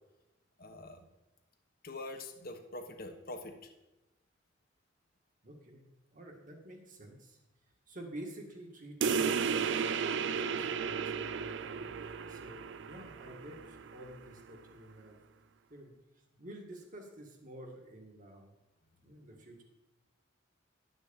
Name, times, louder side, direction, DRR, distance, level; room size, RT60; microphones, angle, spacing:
voice 1, 0.6-1.0 1.8-3.7, left 2 dB, 50° left, 6 dB, 1.2 m, -44 dB
voice 2, 5.4-5.8 6.1-7.4 7.9-15.2 15.7-15.9 16.4-18.5 19.0-19.6, right 1 dB, 45° right, 1 dB, 2.0 m, -50 dB
sound 1, 9.0-14.1, right 6 dB, 65° right, 0.5 m, -34 dB
11.5 x 6.3 x 7.1 m, 1.0 s
head